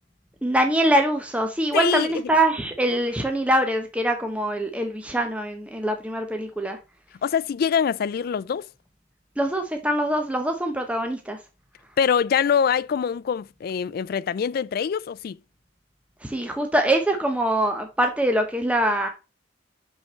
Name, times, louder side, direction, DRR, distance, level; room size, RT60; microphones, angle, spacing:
voice 1, 0.4-6.8 9.4-11.4 16.2-19.1, right 1 dB, 5° right, 0.9 m, -23 dB
voice 2, 1.7-2.1 7.2-8.7 12.0-15.4, left 7 dB, 55° left, 0.3 m, -24 dB
5.8 x 5.5 x 4.2 m
head